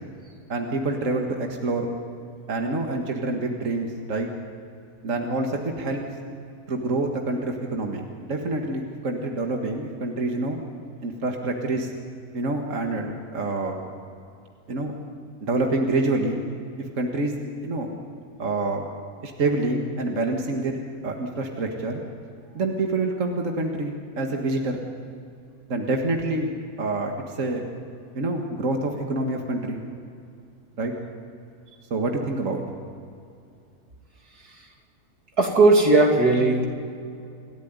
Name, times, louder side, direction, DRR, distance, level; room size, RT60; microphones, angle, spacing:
voice 1, 0.5-1.9 2.5-4.3 5.0-6.0 6.7-10.6 11.0-11.9 12.3-13.8 14.7-14.9 15.4-16.4 17.0-17.3 17.6-17.9 18.4-18.9 19.2-22.0 22.5-24.8 25.7-26.5 26.8-27.7 28.1-29.8 30.8-30.9 31.9-32.6, right 2 dB, 55° right, 2 dB, 2.1 m, -27 dB
voice 2, 35.4-36.7, right 2 dB, 85° right, 1 dB, 3.4 m, -17 dB
28.5 x 13.0 x 9.6 m, 2.5 s
omnidirectional pair, 1.6 m